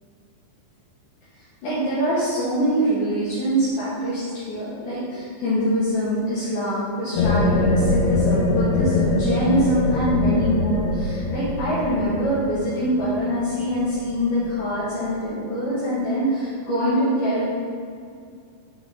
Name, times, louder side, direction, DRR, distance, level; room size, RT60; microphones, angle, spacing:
voice 1, 1.6-17.5, equal, 70° left, -10 dB, 2.7 m, -24 dB
sound 1, 7.1-14.4, left 2 dB, 85° left, 2.4 m, -23 dB
6.5 x 3.8 x 4.9 m, 2.3 s
omnidirectional pair, 4.2 m